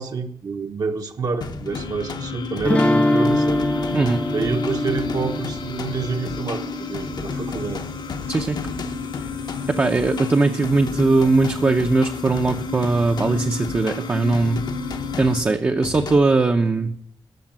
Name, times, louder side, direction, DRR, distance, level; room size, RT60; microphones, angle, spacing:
voice 1, 0.0-3.6 4.3-7.8, right 4 dB, 50° right, 4 dB, 1.0 m, -28 dB
sound 1, 1.4-16.2, left 4 dB, 55° left, 0.9 m, -34 dB
sound 2, 1.7-15.4, left 5 dB, 75° left, 2.5 m, -33 dB
sound 3, 2.7-7.6, left 1 dB, 15° left, 0.5 m, -24 dB
voice 2, 3.9-4.2 8.3-8.6 9.7-14.6 15.2-16.9, right 3 dB, 25° right, 4 dB, 0.6 m, -20 dB
13.5 x 6.5 x 8.8 m, 0.67 s
wide cardioid pair, 170°, 8 cm